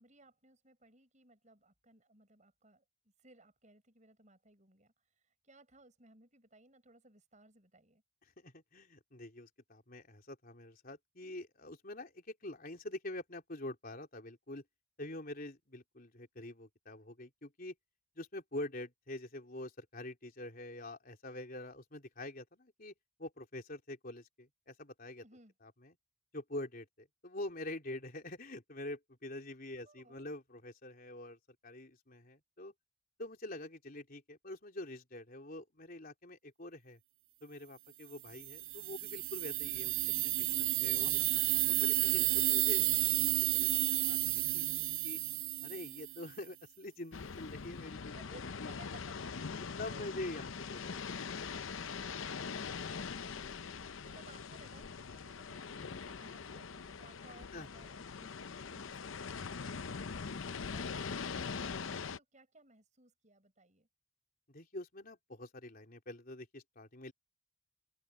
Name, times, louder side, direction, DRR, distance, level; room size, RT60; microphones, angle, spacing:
voice 1, 0.0-8.0 25.2-25.5 29.8-30.2 40.7-41.6 42.0-42.4 48.1-50.6 54.0-60.0 60.4-63.9, right 2 dB, 35° right, 6.7 m, -62 dB
voice 2, 8.4-14.6 15.0-17.7 18.2-22.9 23.2-25.2 25.8-25.9 26.3-32.7 33.2-37.0 37.4-41.2 41.8-43.2 43.5-43.7 44.1-45.2 45.6-48.1 48.6-48.7 49.8-51.2 51.5-52.3 57.5-57.7 60.3-60.7 64.5-67.1, left 1 dB, 45° left, 3.8 m, -46 dB
sound 1, 38.4-46.3, right 16 dB, 75° right, 0.6 m, -32 dB
sound 2, 47.1-62.2, left 5 dB, 70° left, 0.7 m, -42 dB
open air
head